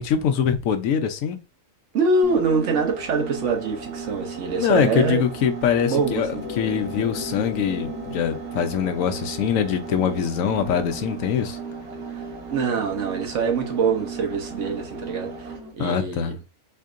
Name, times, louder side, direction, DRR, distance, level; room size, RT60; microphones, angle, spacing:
voice 1, 0.0-1.4 4.6-11.6 15.8-16.4, left 8 dB, 70° left, 1.0 m, -23 dB
voice 2, 1.9-5.3 5.8-6.4 12.1-16.3, right 4 dB, 60° right, 1.1 m, -24 dB
sound 1, 2.2-15.7, right 4 dB, 90° right, 1.5 m, -35 dB
sound 2, 6.3-11.6, left 7 dB, 90° left, 1.2 m, -42 dB
4.3 x 2.7 x 2.4 m
omnidirectional pair, 1.5 m